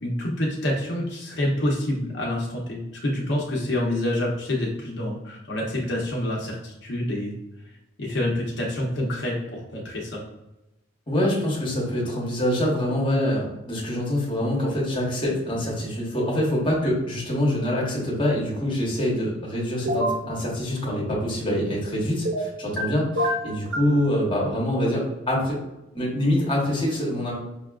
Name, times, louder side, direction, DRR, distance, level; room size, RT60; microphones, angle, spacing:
voice 1, 0.0-7.3 8.0-10.2, left 1 dB, 60° left, -3 dB, 0.7 m, -27 dB
voice 2, 11.1-25.6 25.9-27.3, left 1 dB, 25° left, -4 dB, 0.9 m, -25 dB
sound 1, 19.8-20.2 22.2-22.8 23.2-23.9, equal, 65° right, 1.0 m, -25 dB
5.2 x 2.4 x 2.3 m, 0.94 s
head